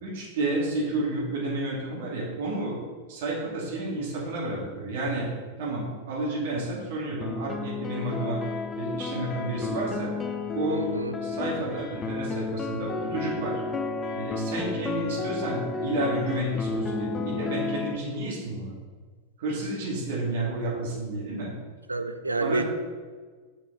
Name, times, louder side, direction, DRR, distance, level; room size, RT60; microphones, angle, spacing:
voice 1, 0.0-2.8 3.1-5.3 5.6-8.4 8.8-10.1 10.5-10.9 11.2-13.6 14.1-18.7 19.4-21.5 22.4-22.6, right 2 dB, 55° right, -5 dB, 2.6 m, -31 dB
sound 1, 7.2-18.0, left 4 dB, 20° left, 0.7 m, -32 dB
voice 2, 10.7-11.2 21.9-22.6, right 3 dB, 80° right, 9 dB, 0.5 m, -29 dB
8.0 x 6.0 x 4.1 m, 1.5 s
figure-of-eight pair, 90°, 0 cm